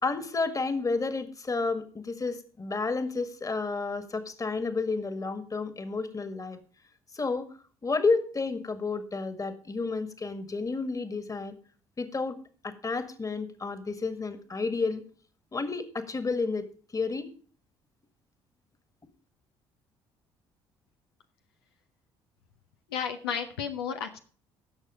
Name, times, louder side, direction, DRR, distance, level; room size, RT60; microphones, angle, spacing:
voice 1, 0.0-6.6 7.1-7.5 7.8-11.6 12.0-12.4 12.6-15.0 15.5-16.7 16.9-17.3, left 4 dB, 25° left, 11 dB, 1.8 m, -31 dB
voice 2, 22.9-24.2, left 7 dB, 85° left, 5 dB, 0.8 m, -32 dB
16.5 x 6.5 x 4.9 m, 0.41 s
hypercardioid pair, 50°, 13 cm